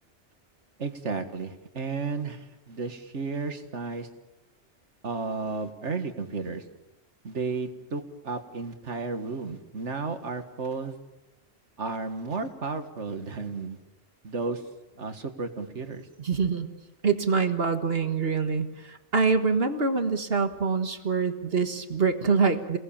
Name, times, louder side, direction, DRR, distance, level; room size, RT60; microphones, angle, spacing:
voice 1, 0.8-4.1 5.0-6.6 7.2-11.0 11.8-13.8 14.2-14.6 15.0-16.1, right 4 dB, 75° right, 7 dB, 2.1 m, -33 dB
voice 2, 16.2-16.7 17.0-22.8, right 5 dB, 55° right, 7 dB, 1.8 m, -25 dB
28.5 x 19.0 x 7.3 m, 1.0 s
omnidirectional pair, 1.2 m